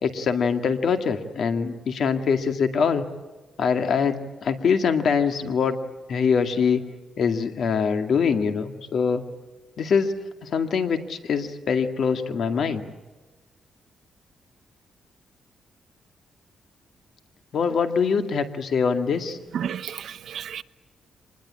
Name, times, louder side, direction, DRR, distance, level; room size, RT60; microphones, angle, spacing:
voice 1, 0.0-3.0 3.6-5.8 6.1-6.8 7.2-9.2 9.8-12.8 17.5-19.4, left 6 dB, 60° left, 2.1 m, -23 dB
voice 2, 19.5-20.6, right 8 dB, 70° right, 0.8 m, -32 dB
25.5 x 21.0 x 8.8 m
cardioid pair, 120°, 0 cm